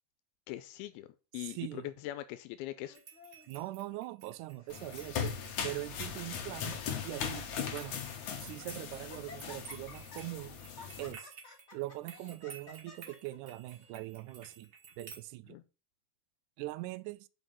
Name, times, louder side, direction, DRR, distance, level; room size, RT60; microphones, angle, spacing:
voice 1, 0.5-1.1 1.3-3.0 15.5-15.6, left 15 dB, 90° left, 2.5 m, -41 dB
voice 2, 1.4-1.9 3.5-8.0 8.4-10.6 11.0-11.3 11.7-14.7 15.0-15.6 16.6-17.3, right 17 dB, 90° right, 1.7 m, -42 dB
Laughter, 2.8-3.7 4.4-4.7 5.0-5.1 5.9-6.5 7.0-7.1 7.5-7.9 8.3-8.7 9.1-13.9, left 3 dB, 45° left, 0.9 m, -54 dB
sound 1, 2.9-15.2, right 6 dB, 45° right, 1.8 m, -54 dB
sound 2, 4.7-11.1, left 7 dB, 60° left, 2.3 m, -39 dB
6.1 x 5.4 x 6.6 m
omnidirectional pair, 4.3 m